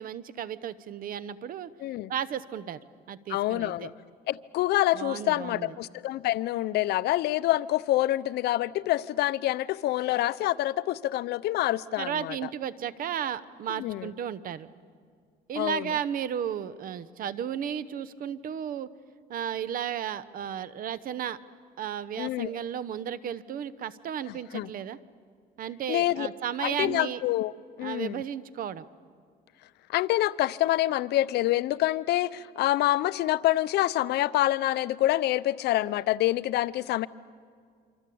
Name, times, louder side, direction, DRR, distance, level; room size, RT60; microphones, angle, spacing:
voice 1, 0.0-1.7 2.1-2.8 3.1-3.9 4.9-5.7 12.0-14.7 15.5-18.9 19.3-21.4 21.8-25.0 25.6-27.2 27.8-28.9, right 9 dB, 55° right, 16 dB, 0.9 m, -34 dB
voice 2, 1.8-2.1 3.3-3.9 4.3-12.4 13.8-14.1 15.6-15.9 22.2-22.6 24.3-24.7 25.9-26.3 26.6-27.5 27.8-28.2 29.9-37.1, left 15 dB, 75° left, 17 dB, 0.7 m, -26 dB
27.0 x 25.5 x 8.6 m, 2.1 s
cardioid pair, 110°, 17 cm